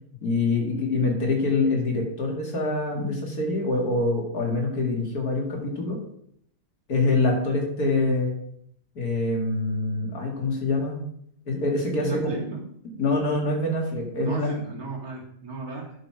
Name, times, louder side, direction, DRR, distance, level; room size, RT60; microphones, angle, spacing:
voice 1, 0.2-6.0 6.9-8.3 9.0-11.0 11.5-12.3 13.0-14.5, left 2 dB, 75° left, 0 dB, 2.9 m, -25 dB
voice 2, 12.0-12.7 14.2-16.1, right 4 dB, 75° right, -2 dB, 2.9 m, -35 dB
10.5 x 6.3 x 4.8 m, 0.68 s
omnidirectional pair, 1.6 m